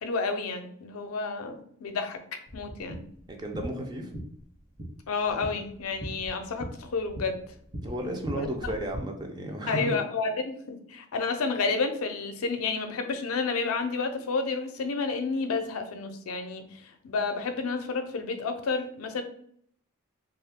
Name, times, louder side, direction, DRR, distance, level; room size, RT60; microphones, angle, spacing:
voice 1, 0.0-3.1 5.1-7.5 8.3-8.5 9.7-19.2, left 4 dB, 85° left, 6 dB, 0.5 m, -30 dB
sound 1, 2.5-9.0, equal, 35° right, 0.9 m, -41 dB
voice 2, 3.3-4.1 7.8-10.0, right 1 dB, 20° right, 3 dB, 0.4 m, -33 dB
2.6 x 2.3 x 3.5 m, 0.64 s
head